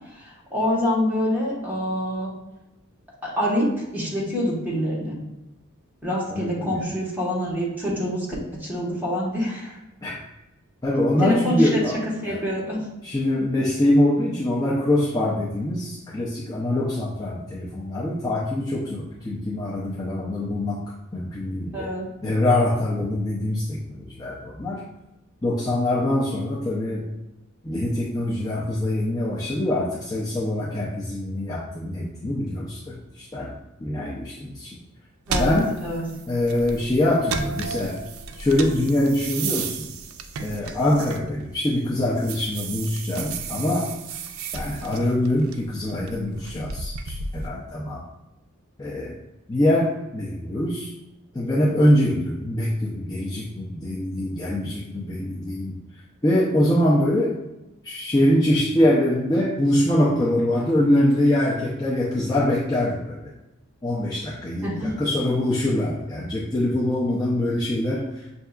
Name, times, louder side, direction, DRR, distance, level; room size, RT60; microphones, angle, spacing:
voice 1, 0.1-2.3 3.2-5.2 6.0-8.3 8.6-9.8 11.2-11.8 12.2-12.8 21.7-22.1 35.3-36.0 64.6-64.9, left 1 dB, 10° right, -6 dB, 1.3 m, -26 dB
voice 2, 6.3-6.8 10.0-10.2 10.8-12.4 13.0-20.8 21.1-21.9 22.2-24.9 25.4-27.1 27.6-33.5 33.8-34.7 35.4-35.8 36.3-38.0 38.4-39.9 40.4-43.9 44.5-48.0 48.8-49.2 49.5-50.9 51.3-55.7 56.2-57.4 57.8-63.3 63.8-68.2, left 1 dB, 20° left, -6 dB, 0.6 m, -24 dB
sound 1, 35.3-41.7 42.0-47.5, right 4 dB, 80° right, 0.4 m, -33 dB
6.6 x 2.7 x 2.4 m, 0.96 s
head